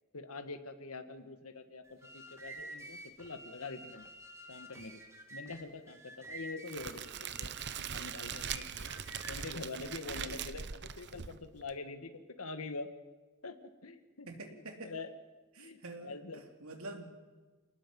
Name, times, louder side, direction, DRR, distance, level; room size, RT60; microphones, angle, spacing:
voice 1, 0.1-4.1 4.5-5.0 5.3-7.5 7.8-8.9 9.3-12.9 13.4-15.1 15.6-16.4, left 3 dB, 70° left, 9 dB, 1.7 m, -45 dB
sound 1, 1.8-9.5, right 1 dB, 10° right, 2.3 m, -50 dB
Crackle, 6.7-11.7, right 8 dB, 50° right, 0.8 m, -41 dB
voice 2, 14.3-14.9 15.6-17.1, right 2 dB, 65° right, 4 dB, 3.1 m, -47 dB
28.5 x 19.5 x 5.4 m, 1.3 s
head